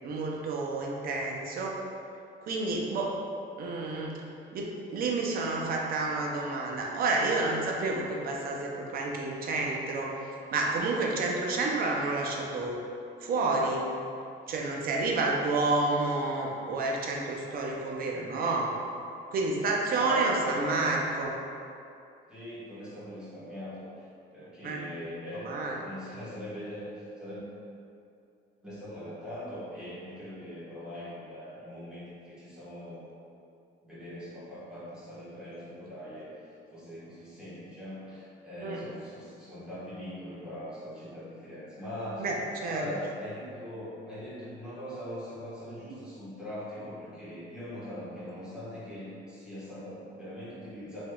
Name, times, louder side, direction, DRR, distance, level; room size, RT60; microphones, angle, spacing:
voice 1, 0.0-1.8 2.4-3.1 3.6-4.2 4.5-10.1 10.5-12.8 13.2-13.9 14.5-18.8 19.3-21.3 24.6-24.8 25.3-25.8 38.6-38.8 42.2-42.9, right 3 dB, 50° right, -1 dB, 0.5 m, -30 dB
voice 2, 19.9-20.8 22.3-23.9 24.3-25.5 25.8-27.5 28.6-33.0 33.8-36.3 36.7-42.3 42.7-51.0, equal, 5° right, -13 dB, 1.2 m, -41 dB
3.3 x 2.9 x 2.3 m, 2.5 s
cardioid pair, 135°, 19 cm